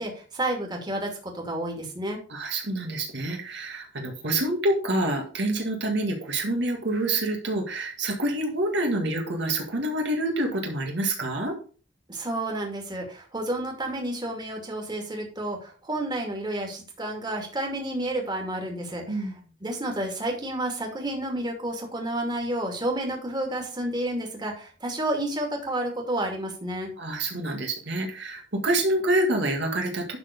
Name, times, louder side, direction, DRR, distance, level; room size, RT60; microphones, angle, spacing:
voice 1, 0.0-2.2 12.1-19.3 19.6-26.9, right 1 dB, 25° right, 1 dB, 2.4 m, -30 dB
voice 2, 2.3-11.5 19.1-19.4 27.0-30.2, right 1 dB, 65° right, 2 dB, 1.9 m, -27 dB
11.5 x 4.2 x 5.2 m, 0.39 s
head